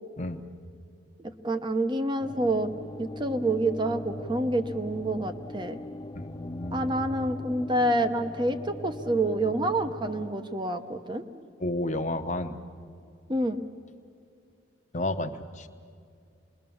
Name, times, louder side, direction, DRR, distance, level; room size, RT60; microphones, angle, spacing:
voice 1, 1.2-2.7 3.0-5.8 6.7-11.2 13.3-13.6, right 1 dB, 20° right, 8 dB, 0.9 m, -28 dB
sound 1, 2.2-10.3, left 1 dB, 15° left, 0.5 m, -40 dB
voice 2, 6.1-6.8 11.6-12.6 14.9-15.7, left 1 dB, 35° left, 7 dB, 1.0 m, -31 dB
27.5 x 21.5 x 7.1 m, 2.3 s
head